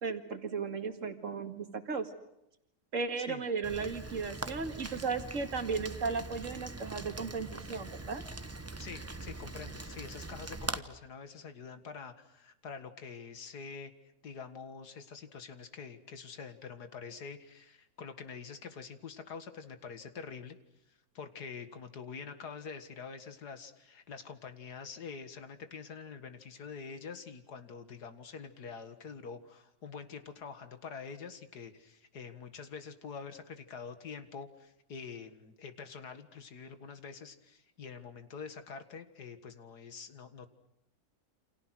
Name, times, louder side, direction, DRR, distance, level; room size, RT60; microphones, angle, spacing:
voice 1, 0.0-2.1 2.9-8.2, right 5 dB, 55° right, 7 dB, 2.4 m, -35 dB
Rain, 3.6-10.8, right 2 dB, 15° right, 0.7 m, -42 dB
voice 2, 8.8-20.6 20.9-40.5, left 5 dB, 85° left, 9 dB, 2.3 m, -46 dB
29.0 x 27.5 x 6.2 m, 0.82 s
omnidirectional pair, 1.7 m